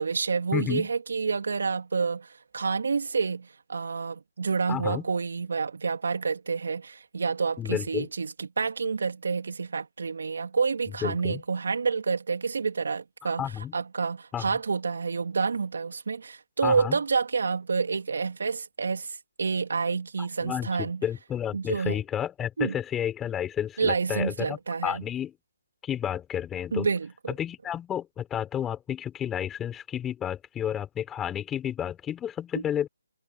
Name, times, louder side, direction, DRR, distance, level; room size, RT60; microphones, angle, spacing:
voice 1, 0.0-21.0 21.5-22.0 22.6-22.7 23.8-25.0 26.7-27.3 32.5-32.6, right 5 dB, 65° right, 2.7 m, -28 dB
voice 2, 0.5-0.9 4.7-5.0 7.6-8.1 11.0-11.4 13.2-13.7 14.3-14.6 16.6-17.0 20.4-25.3 25.8-26.9 27.3-32.9, left 10 dB, 10° left, 5.2 m, -31 dB
hypercardioid pair, 160°, 0 cm